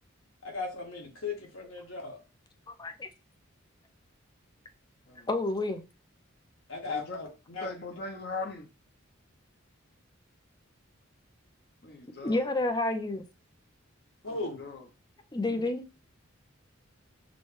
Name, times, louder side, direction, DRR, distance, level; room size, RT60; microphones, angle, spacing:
voice 1, 0.4-2.2 6.7-7.3 7.5-7.7 14.2-14.6, left 4 dB, 80° left, 1.6 m, -36 dB
voice 2, 2.7-3.1 5.3-5.8 12.2-13.2 15.3-15.8, left 2 dB, 20° left, 0.5 m, -29 dB
voice 3, 6.8-8.7 11.8-12.5 14.3-14.9 15.4-15.6, left 3 dB, 50° left, 0.8 m, -40 dB
6.1 x 2.2 x 3.1 m
head